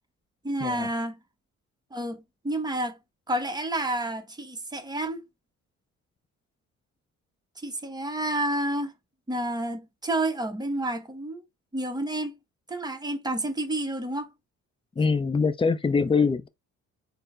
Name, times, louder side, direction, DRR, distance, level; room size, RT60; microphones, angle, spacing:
voice 1, 0.4-1.2 1.9-3.0 3.3-5.2 7.6-8.9 9.3-11.4 11.7-12.4 12.7-14.3, right 1 dB, 15° right, 0.9 m, -30 dB
voice 2, 15.0-16.5, left 5 dB, 20° left, 0.5 m, -23 dB
4.3 x 2.1 x 3.7 m
cardioid pair, 90°, 30 cm